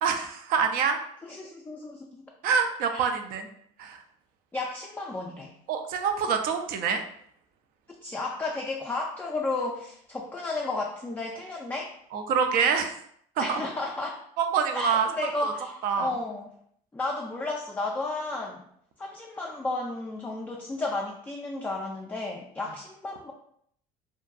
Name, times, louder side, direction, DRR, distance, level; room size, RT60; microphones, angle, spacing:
voice 1, 0.0-1.0 2.4-3.5 3.8-4.0 5.7-7.0 12.1-12.9 13.4-13.6 14.4-15.1 15.4-15.5 15.8-16.1, right 6 dB, 65° right, 6 dB, 0.4 m, -26 dB
voice 2, 1.2-2.2 2.9-3.1 4.5-5.5 8.0-11.9 13.4-14.2 14.7-16.5 16.9-18.6 19.0-23.3, left 2 dB, 10° left, -1 dB, 0.3 m, -33 dB
2.7 x 2.2 x 2.5 m, 0.68 s
supercardioid pair, 90°, 16 cm